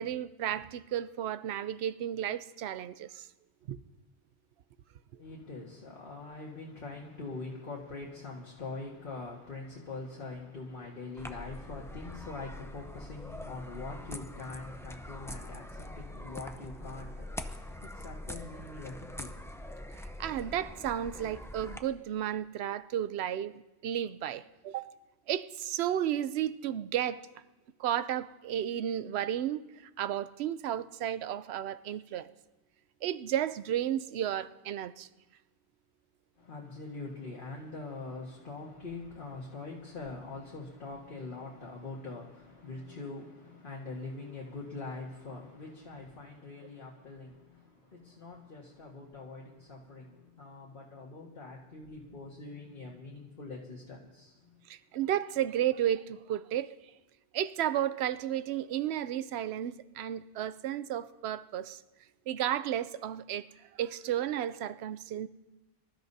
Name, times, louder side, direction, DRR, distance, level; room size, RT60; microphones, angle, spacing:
voice 1, 0.0-3.3 3.7-3.8 20.2-25.0 25.3-27.3 27.8-32.3 33.0-35.1 54.7-56.7 57.3-61.8 62.3-65.3, right 11 dB, 75° right, 14 dB, 0.8 m, -33 dB
voice 2, 5.2-19.7 36.4-54.6, left 3 dB, 50° left, -2 dB, 1.7 m, -43 dB
sound 1, 11.2-21.8, left 1 dB, 5° left, 0.5 m, -44 dB
25.0 x 13.0 x 2.7 m, 1.1 s
omnidirectional pair, 1.1 m